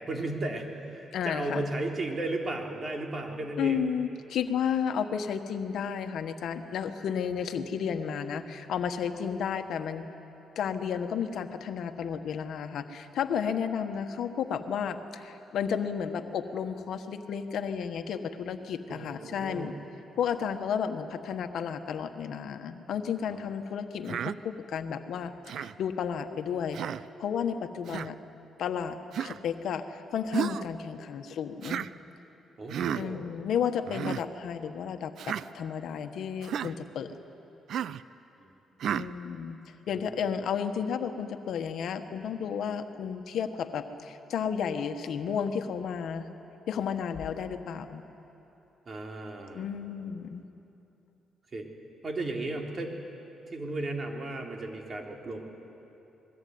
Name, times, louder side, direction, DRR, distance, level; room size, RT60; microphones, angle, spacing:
voice 1, 0.0-3.8 18.9-19.8 23.3-23.5 32.6-33.3 38.4-38.5 39.9-40.3 48.9-49.7 51.5-51.7 52.0-53.0 53.5-55.4, right 2 dB, 35° right, 2 dB, 3.6 m, -35 dB
voice 2, 1.1-1.6 3.6-10.1 10.5-19.7 20.2-26.8 27.2-28.2 28.6-31.8 32.9-37.1 38.9-39.6 39.9-46.3 46.7-48.0 49.5-50.4, left 7 dB, 70° left, 7 dB, 1.4 m, -32 dB
Human voice, 24.1-24.4 25.5-25.7 26.7-27.0 27.9-28.1 29.1-29.4 30.3-30.7 31.6-31.9 32.7-33.0 33.8-34.2 35.2-35.4 36.4-36.7 37.7-38.0 38.8-39.1, right 9 dB, 70° right, 0.5 m, -32 dB
26.5 x 21.0 x 9.5 m, 3.0 s
cardioid pair, 90°, 0 cm